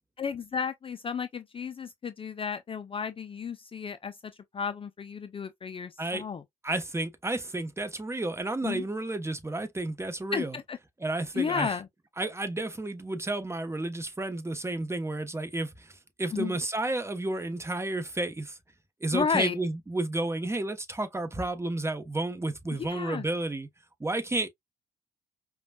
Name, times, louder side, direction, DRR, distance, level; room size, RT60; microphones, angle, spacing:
voice 1, 0.2-6.4 8.6-8.8 10.3-10.8 11.3-11.9 16.3-16.5 19.1-19.5 22.8-23.3, left 6 dB, 30° left, 0.5 m, -32 dB
voice 2, 6.6-10.6 11.0-11.8 12.2-18.6 19.0-23.7 24.0-24.5, right 2 dB, 15° right, 1.0 m, -31 dB
5.0 x 2.3 x 2.3 m
hypercardioid pair, 50°, 19 cm